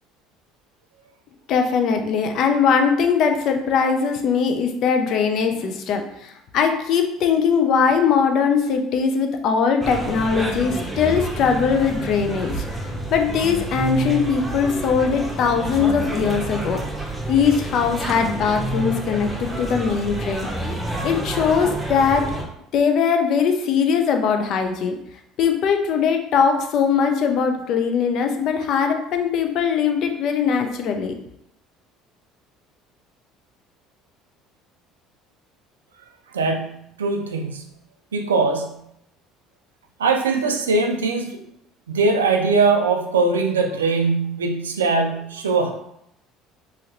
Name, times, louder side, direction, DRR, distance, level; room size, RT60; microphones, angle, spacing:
voice 1, 1.5-12.8 13.1-16.8 17.3-20.5 21.0-22.3 22.7-25.0 25.4-31.2, left 6 dB, 60° left, 5 dB, 0.4 m, -20 dB
sound 1, 9.8-22.4, right 1 dB, 15° right, 0.7 m, -29 dB
voice 2, 36.3-37.7 38.1-38.9 40.0-41.4 41.9-45.7, right 3 dB, 90° right, 5 dB, 0.3 m, -21 dB
2.8 x 2.8 x 2.6 m, 0.77 s
hypercardioid pair, 65°, 0 cm